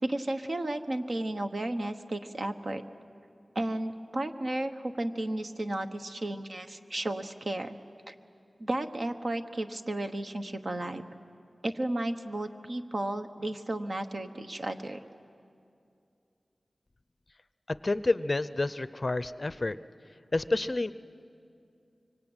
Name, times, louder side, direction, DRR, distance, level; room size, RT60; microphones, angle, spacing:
voice 1, 0.0-2.8 3.5-7.8 8.1-8.2 8.6-11.0 11.6-15.0, right 1 dB, 50° right, 7 dB, 1.2 m, -33 dB
voice 2, 17.8-19.8 20.3-20.9, left 2 dB, 35° left, 14 dB, 0.6 m, -29 dB
25.0 x 24.5 x 9.0 m, 2.5 s
wide cardioid pair, 90°, 0 cm